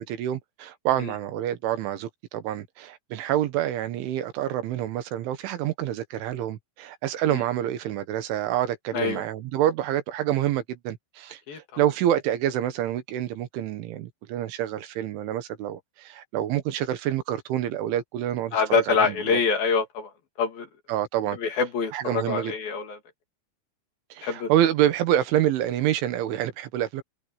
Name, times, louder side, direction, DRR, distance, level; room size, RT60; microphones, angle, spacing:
voice 1, 0.0-18.6 18.9-19.4 20.9-21.4 21.9-22.5 24.1-27.0, right 12 dB, 85° right, 4.0 m, -27 dB
voice 2, 8.9-9.2 11.5-11.8 18.5-20.1 20.4-20.7 21.4-23.0 24.2-24.5, left 5 dB, 55° left, 3.9 m, -25 dB
omnidirectional pair, 5.4 m